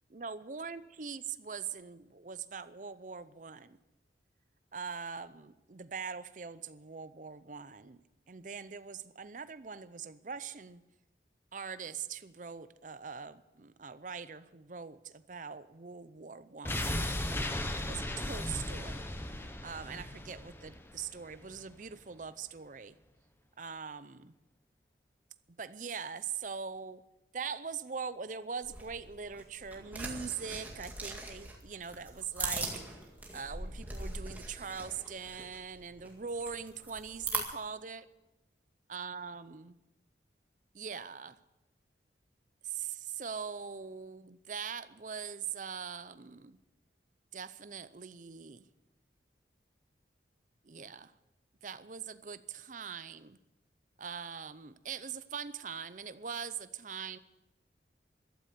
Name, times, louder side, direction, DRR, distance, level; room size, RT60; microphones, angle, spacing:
voice 1, 0.1-3.8 4.7-8.0 8.3-10.8 11.5-17.1 17.8-19.1 19.6-23.0 23.6-24.3 25.6-27.0 27.3-32.8 33.3-38.1 38.9-39.8 40.7-41.4 42.6-46.6 47.3-48.7 50.6-51.1 51.6-53.4 54.0-57.2, right 6 dB, 45° right, 14 dB, 0.6 m, -42 dB
sound 1, 16.6-21.6 21.9-22.0, left 1 dB, 10° left, 0.9 m, -36 dB
sound 2, 28.6-37.4, right 2 dB, 10° right, 2.1 m, -41 dB
14.5 x 12.5 x 6.9 m, 1.0 s
head